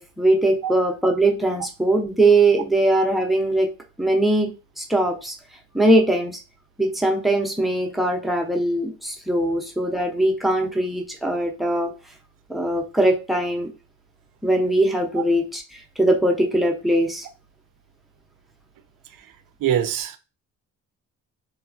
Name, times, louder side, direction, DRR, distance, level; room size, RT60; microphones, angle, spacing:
voice 1, 0.0-3.7 4.0-4.5 4.8-5.4 5.7-6.4 6.8-11.9 12.5-13.7 14.4-17.3, right 1 dB, ahead, 0.6 m, -21 dB
voice 2, 19.6-20.2, right 10 dB, 65° right, 0.5 m, -24 dB
3.1 x 2.2 x 2.5 m
cardioid pair, 90°, 36 cm